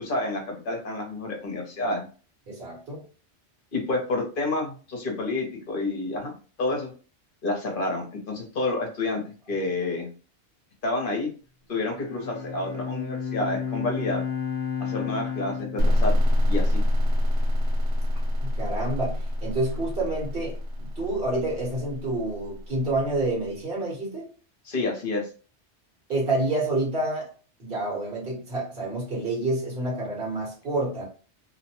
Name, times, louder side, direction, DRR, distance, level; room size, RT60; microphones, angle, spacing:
voice 1, 0.0-2.0 3.7-6.9 7.4-9.2 9.5-10.1 10.8-11.3 11.7-14.2 14.8-16.2 16.5-16.8 24.7-25.3, left 2 dB, 55° left, 1 dB, 0.9 m, -29 dB
voice 2, 2.5-3.1 18.4-24.3 26.1-27.3 27.6-31.1, right 2 dB, 55° right, -3 dB, 1.4 m, -28 dB
Bowed string instrument, 11.8-17.3, left 6 dB, 25° left, 0.7 m, -33 dB
sound 1, 15.8-23.3, left 1 dB, 80° right, 0.9 m, -26 dB
2.8 x 2.1 x 2.8 m, 0.37 s
omnidirectional pair, 1.2 m